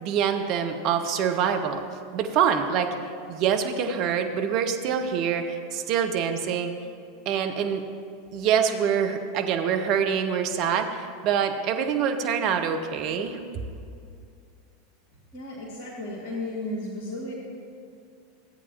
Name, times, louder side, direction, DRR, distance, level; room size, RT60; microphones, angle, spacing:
voice 1, 0.0-1.8 2.1-2.9 3.3-6.7 7.3-7.8 8.3-13.4, right 7 dB, 45° right, 6 dB, 0.7 m, -25 dB
voice 2, 15.3-17.3, left 1 dB, 50° left, -5 dB, 1.5 m, -34 dB
14.0 x 8.3 x 2.9 m, 2.3 s
figure-of-eight pair, 85°, 0 cm